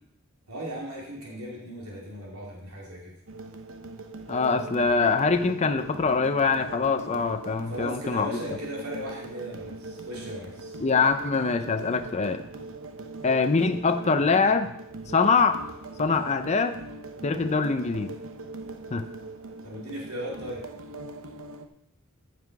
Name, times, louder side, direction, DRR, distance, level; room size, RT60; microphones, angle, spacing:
voice 1, 0.5-3.2 7.7-10.8 19.6-20.7, equal, 90° right, -3 dB, 2.7 m, -37 dB
sound 1, 3.3-21.7, right 2 dB, 65° right, 0.9 m, -41 dB
voice 2, 4.3-8.3 10.8-12.4 13.2-14.7 15.1-15.6 16.0-16.8 17.2-18.1 18.9-19.0, left 4 dB, 30° left, 7 dB, 0.6 m, -24 dB
14.5 x 5.9 x 4.7 m, 0.81 s
head